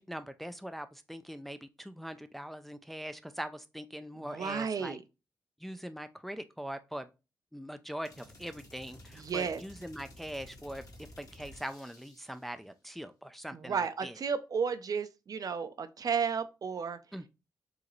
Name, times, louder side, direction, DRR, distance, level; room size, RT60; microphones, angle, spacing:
voice 1, 0.0-5.0 5.6-7.1 7.5-14.1 17.1-17.3, equal, ahead, 0.4 m, -42 dB
voice 2, 4.3-5.0 9.1-9.6 13.5-17.0, right 6 dB, 55° right, 0.5 m, -33 dB
sound 1, 8.0-12.5, left 1 dB, 50° left, 1.6 m, -53 dB
4.9 x 2.9 x 3.0 m
cardioid pair, 80°, 8 cm